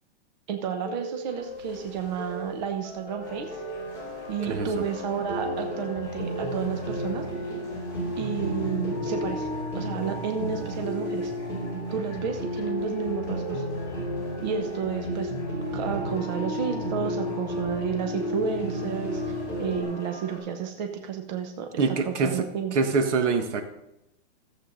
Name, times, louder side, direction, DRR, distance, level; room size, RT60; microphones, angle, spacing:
voice 1, 0.5-3.6 4.3-7.3 8.2-9.5 9.7-11.3 11.9-13.6 14.4-15.3 15.7-22.7, right 7 dB, 40° right, 5 dB, 1.0 m, -31 dB
sound 1, 0.8-19.8, equal, 5° right, 2.9 m, -33 dB
sound 2, 3.2-20.4, equal, 10° left, 4.8 m, -44 dB
voice 2, 4.5-4.8 21.8-22.3 22.7-23.6, right 4 dB, 75° right, 7 dB, 1.6 m, -24 dB
14.0 x 7.8 x 3.9 m, 0.87 s
supercardioid pair, 170°, 35 cm